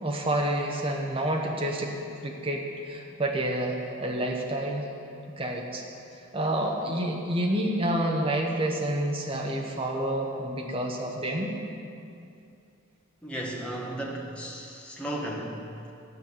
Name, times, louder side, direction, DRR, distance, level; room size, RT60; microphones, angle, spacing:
voice 1, 0.0-1.9 2.2-4.8 5.4-5.8 6.3-11.5, right 1 dB, 25° right, 0 dB, 1.2 m, -28 dB
voice 2, 13.2-15.6, right 1 dB, 5° left, -4 dB, 1.5 m, -35 dB
11.0 x 5.8 x 8.9 m, 2.5 s
head